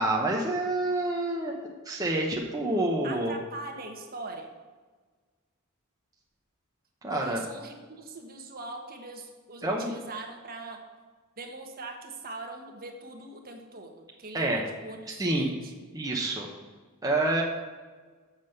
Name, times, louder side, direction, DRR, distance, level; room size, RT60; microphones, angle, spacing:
voice 1, 0.0-3.3 7.0-7.4 9.6-9.9 14.3-14.6 15.2-15.5 15.9-16.5 17.0-17.4, right 2 dB, 15° right, -2 dB, 0.9 m, -28 dB
voice 2, 3.0-4.5 7.1-10.8 11.4-15.7, right 3 dB, 45° right, 3 dB, 1.3 m, -41 dB
7.5 x 6.1 x 6.5 m, 1.4 s
head